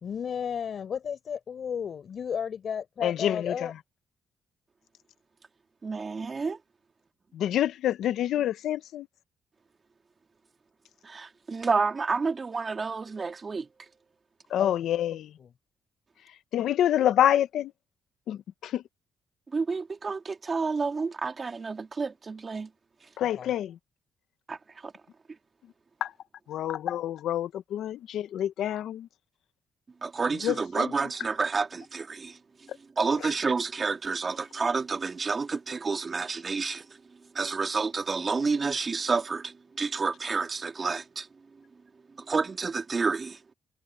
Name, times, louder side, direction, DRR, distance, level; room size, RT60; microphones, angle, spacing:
voice 1, 0.0-3.7 14.6-14.7 15.1-15.5 23.2-23.5, left 7 dB, 55° left, 4.6 m, -34 dB
voice 2, 3.0-3.5 7.3-9.1 14.5-15.3 16.5-17.7 18.3-18.8 23.2-23.7 26.0-26.1 26.5-29.1 30.4-30.9, left 11 dB, 75° left, 1.0 m, -27 dB
voice 3, 5.8-6.6 11.0-13.7 19.5-22.7 24.5-24.6 24.8-24.9 30.0-32.4 33.0-36.9 37.3-41.3 42.3-43.4, right 4 dB, 35° right, 2.7 m, -29 dB
cardioid pair, 90°, 0 cm